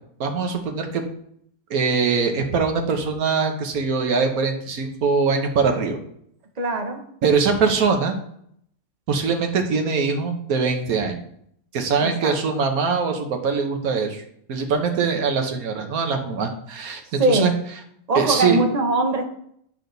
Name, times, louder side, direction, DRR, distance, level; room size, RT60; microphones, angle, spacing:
voice 1, 0.2-1.0 1.7-6.0 7.2-8.2 9.1-11.2 11.7-14.2 14.5-17.5 18.1-18.6, right 5 dB, 65° right, 4 dB, 1.5 m, -22 dB
voice 2, 6.6-7.0 12.0-12.6 17.0-17.5 18.1-19.2, right 2 dB, 30° right, 3 dB, 0.9 m, -22 dB
9.1 x 4.9 x 4.0 m, 0.69 s
omnidirectional pair, 1.7 m